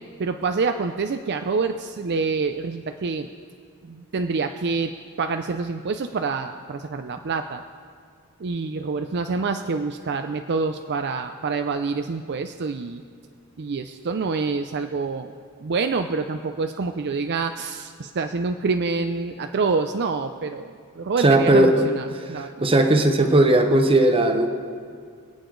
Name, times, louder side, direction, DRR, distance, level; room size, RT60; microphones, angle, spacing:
voice 1, 0.2-3.3 3.8-4.9 5.2-7.6 8.4-13.0 13.6-15.3 15.6-22.5, right 4 dB, 50° right, 7 dB, 0.5 m, -27 dB
voice 2, 21.2-21.9 22.3-24.5, right 1 dB, 25° right, 6 dB, 1.0 m, -17 dB
26.5 x 8.9 x 3.9 m, 2.1 s
head